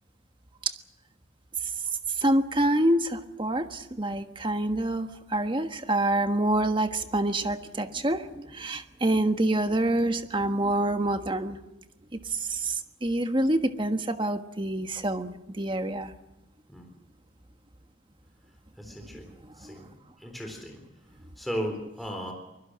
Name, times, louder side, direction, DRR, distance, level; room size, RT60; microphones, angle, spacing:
voice 1, 2.1-11.6 12.1-16.1 19.6-19.8, right 1 dB, 25° right, 7 dB, 1.5 m, -27 dB
voice 2, 18.8-19.3 19.5-19.9 20.2-20.8 21.4-22.3, equal, ahead, 2 dB, 3.8 m, -35 dB
24.5 x 21.5 x 6.4 m, 0.94 s
head